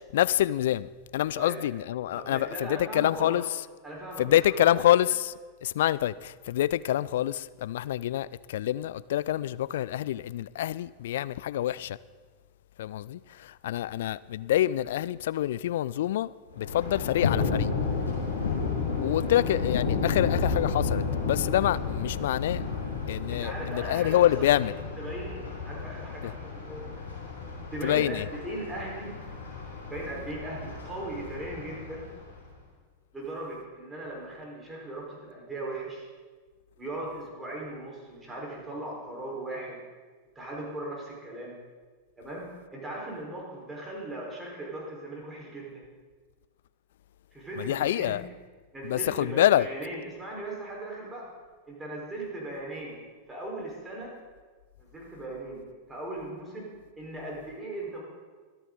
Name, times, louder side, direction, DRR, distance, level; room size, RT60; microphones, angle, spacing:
voice 1, 0.1-3.4 4.2-5.3 5.6-12.0 12.8-17.7 18.9-22.6 23.1-24.8 26.2-26.3 27.8-28.3 47.6-48.2 48.8-49.7, left 13 dB, 55° left, 0.3 m, -26 dB
voice 2, 2.1-3.4 3.8-4.8 23.3-27.0 27.7-29.1 29.9-32.1 33.1-36.1 36.8-39.8 40.3-41.6 42.2-45.8 47.3-48.1 48.7-51.3 51.7-53.0 53.3-54.1 54.8-55.6 55.9-56.7 57.0-58.0, right 1 dB, 15° right, 4.6 m, -38 dB
Thunder, 16.5-32.4, left 5 dB, 75° left, 4.8 m, -32 dB
24.0 x 9.1 x 4.0 m
figure-of-eight pair, 90°, 0 cm